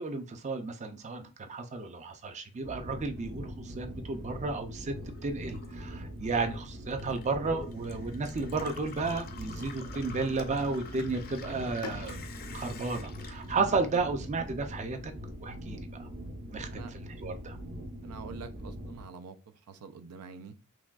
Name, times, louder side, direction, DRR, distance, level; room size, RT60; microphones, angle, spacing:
voice 1, 0.0-5.0 5.2-12.2 12.5-15.1 15.4-16.1 16.5-17.6, right 3 dB, 30° right, 7 dB, 0.4 m, -33 dB
sound 1, 2.6-19.0, equal, 50° right, 0.9 m, -42 dB
Gurgling / Water tap faucet / Sink (filling or washing), 4.9-14.5 14.8-15.7, left 5 dB, 45° left, 0.5 m, -49 dB
Bowed string instrument, 11.8-15.4, left 5 dB, 90° left, 0.5 m, -49 dB
voice 2, 18.0-19.4 19.7-20.6, right 5 dB, 85° right, 10 dB, 0.4 m, -45 dB
5.9 x 2.2 x 2.3 m, 0.33 s
head